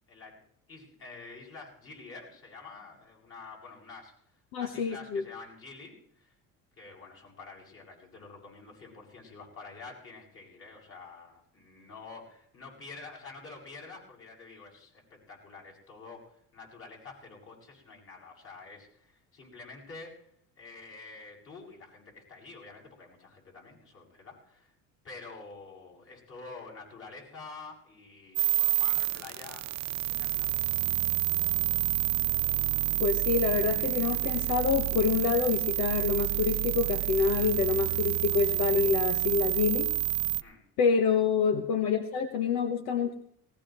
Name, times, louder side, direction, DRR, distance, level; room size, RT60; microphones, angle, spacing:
voice 1, 0.1-0.4 0.7-4.1 4.6-6.3 6.8-20.3 20.6-24.7 25.0-29.7 30.1-30.5 40.4-40.6, left 3 dB, 40° left, -1 dB, 7.7 m, -48 dB
voice 2, 4.5-5.2 33.0-39.9 40.8-43.1, left 6 dB, 75° left, 7 dB, 1.4 m, -27 dB
sound 1, 28.4-40.4, right 17 dB, 55° right, 0.6 m, -28 dB
19.0 x 18.5 x 3.1 m, 0.65 s
cardioid pair, 120°, 33 cm